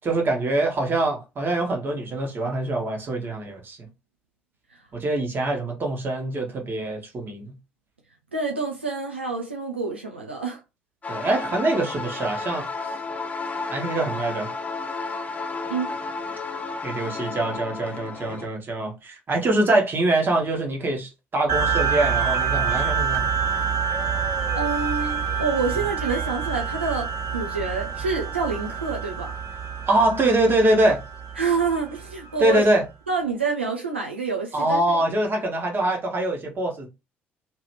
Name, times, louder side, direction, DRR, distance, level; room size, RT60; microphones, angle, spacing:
voice 1, 0.0-3.9 4.9-7.5 11.1-12.7 13.7-14.5 16.8-23.3 29.9-31.0 32.4-32.8 34.5-36.9, right 2 dB, 35° right, 1.4 m, -24 dB
voice 2, 8.3-10.6 15.7-15.9 24.5-29.3 31.4-32.7 33.1-34.8, right 4 dB, 85° right, 0.5 m, -27 dB
sound 1, 11.0-18.5, left 4 dB, 25° left, 0.8 m, -32 dB
sound 2, 21.5-32.4, right 6 dB, 60° right, 1.6 m, -27 dB
3.0 x 2.9 x 3.1 m
figure-of-eight pair, 50°, 6 cm